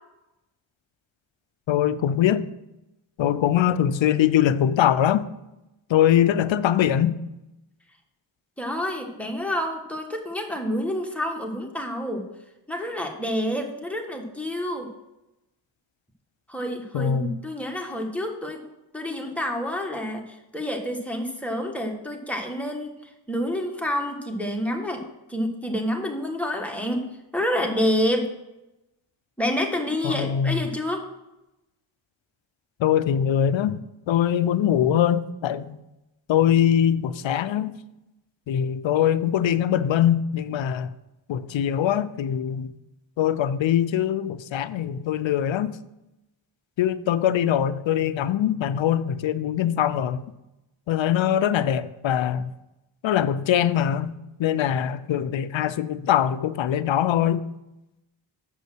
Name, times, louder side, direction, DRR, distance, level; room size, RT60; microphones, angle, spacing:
voice 1, 1.7-2.4 3.2-5.2 5.9-7.2 16.9-17.3 30.0-30.6 32.8-33.8 34.1-35.8 36.3-37.7 38.5-40.9 41.3-42.7 43.2-45.7 46.8-50.3 50.9-52.5 53.0-57.4, left 10 dB, 65° left, 0.6 m, -22 dB
voice 2, 8.6-12.3 12.7-14.9 16.5-18.6 18.9-25.0 25.3-27.1 27.3-28.3 29.4-31.0, equal, 5° left, 1.6 m, -28 dB
7.6 x 5.4 x 6.1 m
cardioid pair, 65°, 49 cm